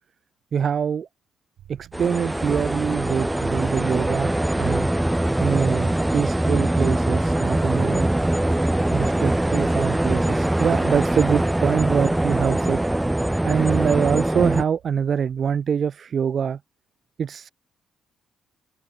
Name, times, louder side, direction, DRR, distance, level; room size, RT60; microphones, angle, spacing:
voice 1, 0.5-1.1 1.7-4.9 5.4-8.1 8.9-12.8 13.4-16.6 17.2-17.5, right 7 dB, 50° right, 2.0 m, -24 dB
sound 1, 1.6-15.6, right 12 dB, 75° right, 5.6 m, -48 dB
sound 2, 1.9-14.6, right 1 dB, 10° right, 2.1 m, -22 dB
open air
cardioid pair, 90°, 0 cm